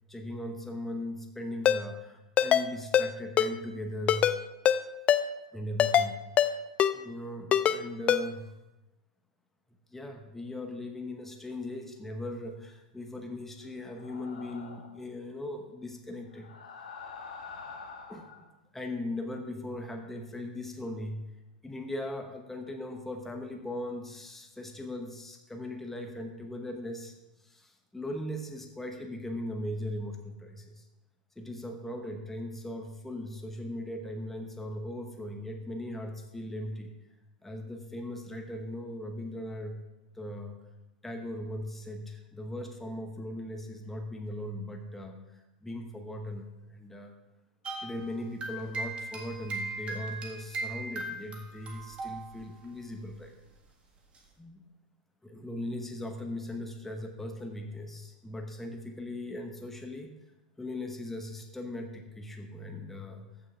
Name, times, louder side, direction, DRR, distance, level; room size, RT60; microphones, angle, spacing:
voice 1, 0.1-4.3 5.5-6.2 6.9-8.5 9.9-16.5 18.1-18.3 18.7-21.2 21.6-30.9 31.4-36.9 37.4-39.8 40.1-40.6 41.0-47.1 47.8-53.3 54.4-54.6 55.2-60.1 60.6-63.3, left 1 dB, 5° left, 3 dB, 1.1 m, -39 dB
Ringtone, 1.7-1.8 2.4-2.6 2.9-3.1 3.4-3.5 4.1-4.4 4.7-4.8 5.1-5.2 5.8-6.1 6.4-6.5 6.8-6.9 7.5-7.8 8.1-8.2, left 9 dB, 30° left, 0.4 m, -22 dB
sound 1, 13.8-15.0 16.3-18.4, left 5 dB, 70° left, 1.6 m, -46 dB
sound 2, 47.6-52.7 52.9-53.1 54.2-54.3, right 2 dB, 25° right, 1.6 m, -38 dB
14.5 x 6.1 x 3.5 m, 0.99 s
figure-of-eight pair, 95°, 4 cm